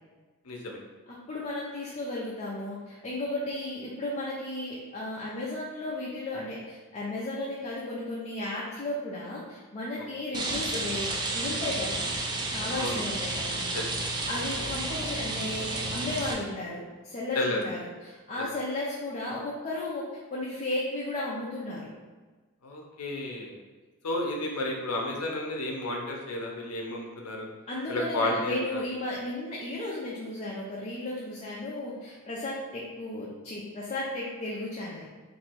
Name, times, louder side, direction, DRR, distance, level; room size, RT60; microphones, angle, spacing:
voice 1, 0.4-0.8 10.0-10.1 12.7-13.0 13.7-13.8 17.4-17.6 18.4-18.5 22.6-23.6 24.0-27.5 27.9-28.8, left 1 dB, 80° left, 0 dB, 0.7 m, -32 dB
voice 2, 1.3-11.1 11.3-12.1 12.5-13.6 14.2-17.8 18.0-21.9 27.7-35.1, left 2 dB, 30° left, -6 dB, 0.6 m, -34 dB
Rain, 10.3-16.3, right 2 dB, 20° right, 0.4 m, -31 dB
3.0 x 2.6 x 4.4 m, 1.3 s
head